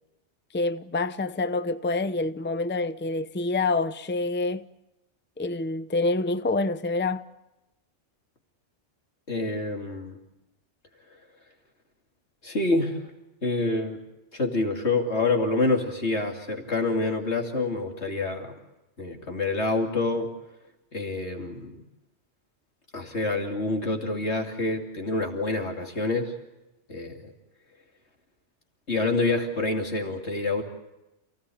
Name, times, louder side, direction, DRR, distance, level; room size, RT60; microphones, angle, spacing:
voice 1, 0.5-4.7 5.4-7.2, left 3 dB, 10° left, 0.7 m, -27 dB
voice 2, 9.3-10.2 12.4-13.0 13.4-14.0 14.3-18.5 19.0-20.3 20.9-21.7 22.9-26.3 26.9-27.3 28.9-30.6, left 2 dB, 65° left, 3.0 m, -27 dB
28.5 x 17.5 x 8.6 m
omnidirectional pair, 1.2 m